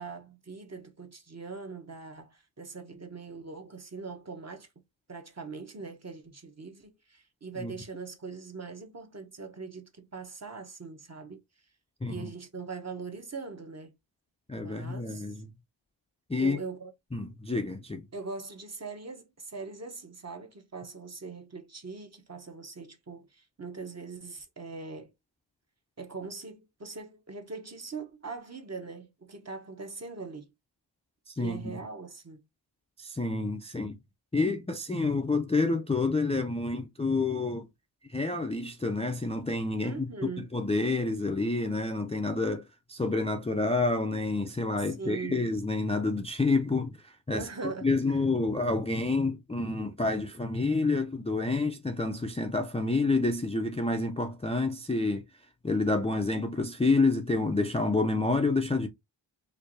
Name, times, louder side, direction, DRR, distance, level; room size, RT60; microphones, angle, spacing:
voice 1, 0.0-4.8 5.1-11.4 12.1-13.9 14.5-15.4 16.4-16.9 18.1-25.1 26.0-30.5 31.4-32.5 39.8-40.5 44.8-45.5 47.3-48.2, right 4 dB, 35° right, 0.8 m, -41 dB
voice 2, 14.5-15.5 16.3-16.6 17.1-18.1 31.3-31.8 33.0-34.0 34.3-37.7 38.1-42.6 42.9-47.5 47.8-55.2 55.6-58.9, left 3 dB, 15° left, 0.4 m, -28 dB
4.5 x 2.6 x 2.5 m
wide cardioid pair, 85°, 46 cm